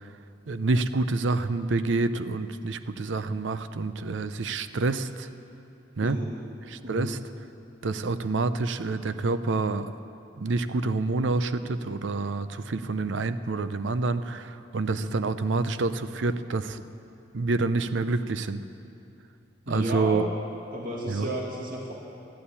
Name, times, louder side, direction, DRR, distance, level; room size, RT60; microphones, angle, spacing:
voice 1, 0.5-5.3 6.0-6.2 6.7-7.2 7.8-9.9 10.4-16.8 17.3-18.6 19.7-20.3 21.1-21.3, right 3 dB, 75° right, 12 dB, 0.6 m, -27 dB
voice 2, 19.7-20.3 20.7-21.9, right 1 dB, 50° right, -3 dB, 2.2 m, -32 dB
13.0 x 11.5 x 8.4 m, 2.8 s
head